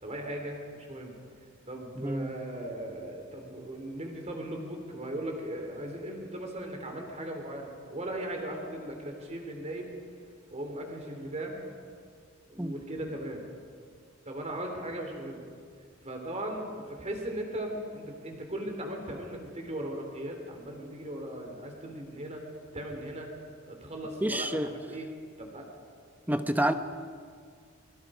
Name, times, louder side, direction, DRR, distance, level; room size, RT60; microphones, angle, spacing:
voice 1, 0.0-1.2 1.7-9.9 10.5-11.6 12.5-13.5 14.3-15.5 16.0-23.3 23.7-25.1 25.4-25.7, right 1 dB, 30° right, 2 dB, 3.7 m, -38 dB
voice 2, 2.0-2.3 12.6-12.8 24.2-24.7 26.3-26.7, right 1 dB, 10° right, 9 dB, 1.0 m, -28 dB
28.5 x 23.0 x 5.2 m, 2.1 s
head